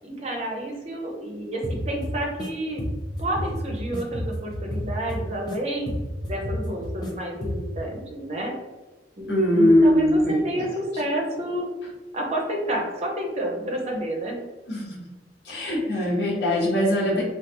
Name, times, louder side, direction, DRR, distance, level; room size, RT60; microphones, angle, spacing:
voice 1, 0.0-2.8 3.2-5.9 6.2-8.5 9.2-11.7 12.1-14.4, right 1 dB, 35° right, 0 dB, 0.6 m, -29 dB
sound 1, 1.6-2.5 2.8-5.6 5.9-7.1 7.4-7.8, equal, 25° left, 0.5 m, -31 dB
voice 2, 9.3-10.4 14.7-15.0 15.4-17.2, equal, 65° left, -4 dB, 1.0 m, -20 dB
3.3 x 2.3 x 2.8 m, 1.2 s
head